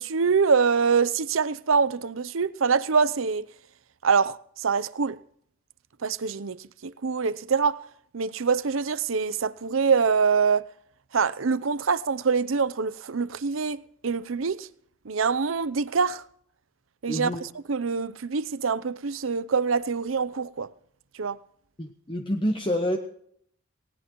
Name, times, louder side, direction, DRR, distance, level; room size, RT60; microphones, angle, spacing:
voice 1, 0.0-3.4 4.0-5.2 6.0-6.6 6.8-7.8 8.1-10.6 11.1-14.7 15.0-16.2 17.0-17.3 17.7-20.7 21.2-21.4, right 5 dB, 85° right, 0.7 m, -24 dB
voice 2, 17.1-17.4 21.8-23.0, equal, 25° left, 1.0 m, -27 dB
19.0 x 18.0 x 3.1 m
head